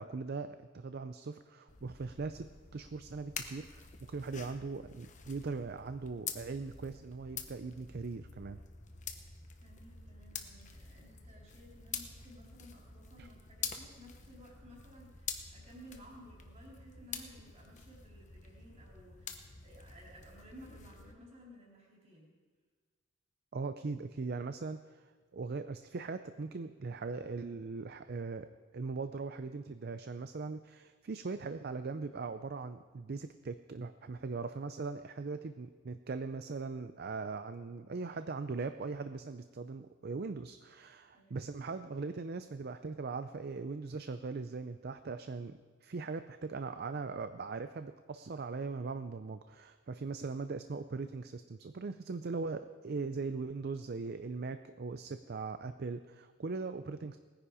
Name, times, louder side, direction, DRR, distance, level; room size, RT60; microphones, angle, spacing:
voice 1, 0.0-2.5 2.7-8.6 13.2-13.3 23.5-28.5 28.7-57.2, right 4 dB, 50° right, 10 dB, 0.5 m, -40 dB
sound 1, 1.7-21.1, left 7 dB, 40° left, 1.1 m, -47 dB
voice 2, 9.6-22.3 41.1-41.5, equal, 35° right, -3 dB, 4.1 m, -56 dB
19.0 x 10.0 x 4.9 m, 1.5 s
head